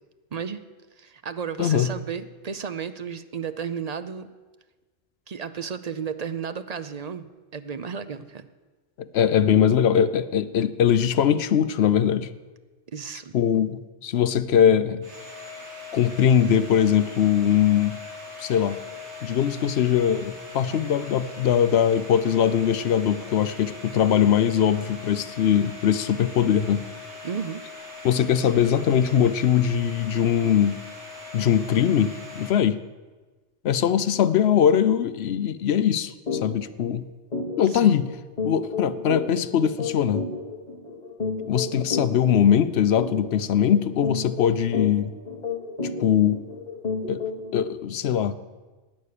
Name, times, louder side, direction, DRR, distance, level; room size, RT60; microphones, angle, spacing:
voice 1, 0.3-0.6 1.0-4.3 5.3-7.3 7.5-8.5 12.9-13.3 27.2-27.6 37.7-38.0, right 6 dB, 45° right, 10 dB, 0.6 m, -33 dB
voice 2, 1.6-1.9 9.0-12.3 13.3-15.1 15.9-18.0 18.4-18.8 19.2-26.9 28.0-30.8 31.3-32.8 33.6-37.1 37.6-38.1 38.4-40.3 41.5-45.1 46.0-46.4 47.0-47.3 47.5-48.3, left 9 dB, 65° left, 14 dB, 0.8 m, -21 dB
Domestic sounds home sounds, 15.0-32.5, left 3 dB, 70° right, 2.9 m, -41 dB
sound 1, 36.3-36.4 36.8-36.9 37.3-47.5, left 4 dB, 35° left, 1.6 m, -31 dB
16.0 x 9.9 x 6.6 m, 1.3 s
omnidirectional pair, 1.2 m